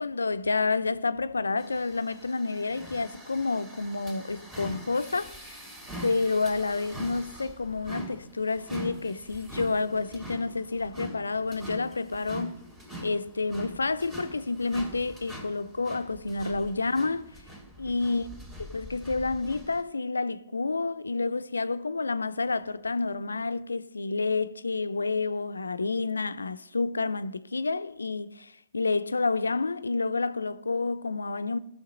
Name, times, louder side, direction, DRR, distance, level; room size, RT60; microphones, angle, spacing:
voice 1, 0.0-5.6 6.0-12.6 13.0-17.3 17.8-18.3 18.7-31.6, left 3 dB, 85° left, 0.4 m, -29 dB
sound 1, 1.6-19.8, right 1 dB, 20° right, 2.6 m, -44 dB
17.0 x 6.4 x 3.9 m
figure-of-eight pair, 110°, 0 cm